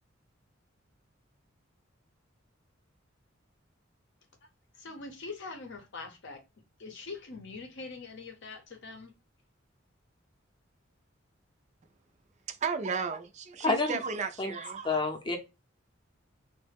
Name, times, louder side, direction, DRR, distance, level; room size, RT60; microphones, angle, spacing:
voice 1, 4.8-6.4 6.8-9.1, left 3 dB, 60° left, 0.7 m, -43 dB
voice 2, 12.5-15.0, right 5 dB, 35° right, 0.3 m, -34 dB
voice 3, 13.6-14.0 14.4-14.5 14.8-15.4, left 3 dB, 25° left, 0.6 m, -28 dB
3.1 x 2.1 x 3.3 m
head